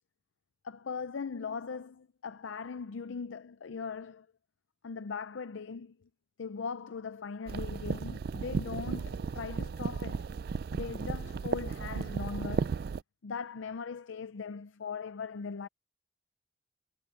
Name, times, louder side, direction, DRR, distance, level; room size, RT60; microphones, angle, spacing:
voice 1, 0.6-4.3 4.8-6.0 6.4-10.3 10.7-12.8 13.2-15.7, left 5 dB, 85° left, 0.5 m, -40 dB
sound 1, 7.5-13.0, right 5 dB, 50° right, 0.3 m, -34 dB
head